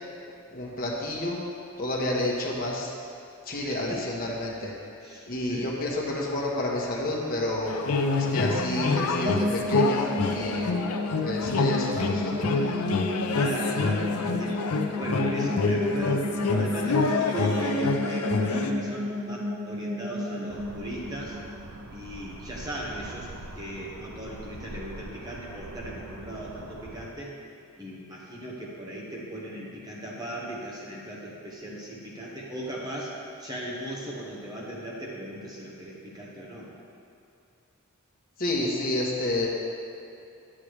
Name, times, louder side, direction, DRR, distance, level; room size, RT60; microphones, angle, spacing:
voice 1, 0.5-1.4 1.8-2.9 3.4-4.7 5.3-7.7 8.2-10.9 11.2-12.5 38.4-39.5, left 1 dB, 40° left, -3 dB, 1.2 m, -30 dB
voice 2, 5.0-5.7 13.3-14.6 14.9-21.4 21.9-27.3 27.8-36.7, right 1 dB, 20° right, -4 dB, 1.2 m, -37 dB
sound 1, 7.7-18.7, left 3 dB, 85° left, 0.5 m, -26 dB
sound 2, 9.2-22.1, left 1 dB, 35° right, 0.8 m, -32 dB
sound 3, 20.5-27.1, right 2 dB, 70° right, 0.6 m, -43 dB
8.6 x 8.4 x 3.2 m, 2.5 s
head